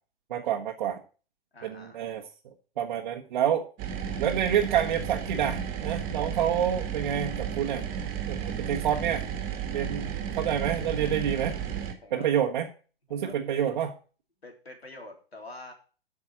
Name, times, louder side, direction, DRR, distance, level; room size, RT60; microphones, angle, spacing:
voice 1, 0.3-1.0 1.6-2.2 2.8-3.6 4.2-7.8 8.3-9.2 9.7-11.5 12.1-12.7 13.1-13.9, right 9 dB, 50° right, -2 dB, 1.4 m, -28 dB
voice 2, 1.5-2.0 8.6-8.8 12.0-12.3 13.1-13.7 14.4-15.7, left 2 dB, 90° left, 2 dB, 3.4 m, -46 dB
sound 1, 3.8-11.9, right 8 dB, 30° right, 1.9 m, -33 dB
8.7 x 6.0 x 7.4 m, 0.38 s
hypercardioid pair, 125°, 30 cm